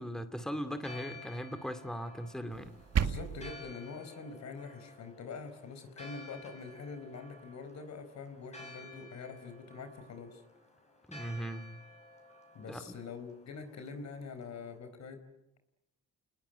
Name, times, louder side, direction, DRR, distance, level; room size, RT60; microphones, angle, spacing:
voice 1, 0.0-2.7 11.1-11.7 12.7-12.8, equal, ahead, 9 dB, 2.3 m, -39 dB
Church bell, 0.7-14.8, left 2 dB, 20° left, 6.1 m, -53 dB
sound 1, 2.5-3.5, right 8 dB, 55° right, 2.0 m, -32 dB
voice 2, 3.0-10.4 12.5-15.2, left 4 dB, 65° left, 9 dB, 4.6 m, -45 dB
29.0 x 20.0 x 9.2 m, 0.88 s
cardioid pair, 90°, 30 cm